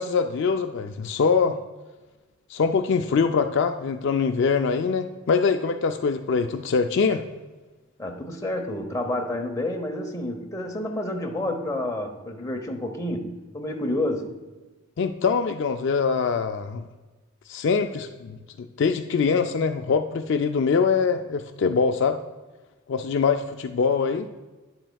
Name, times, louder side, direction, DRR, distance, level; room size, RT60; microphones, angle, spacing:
voice 1, 0.0-1.6 2.5-7.2 15.0-16.9 17.5-22.2 22.9-24.3, left 5 dB, 55° left, 7 dB, 0.3 m, -23 dB
voice 2, 8.0-14.3, left 1 dB, 15° left, 2 dB, 0.7 m, -29 dB
10.0 x 7.6 x 2.3 m, 1.2 s
head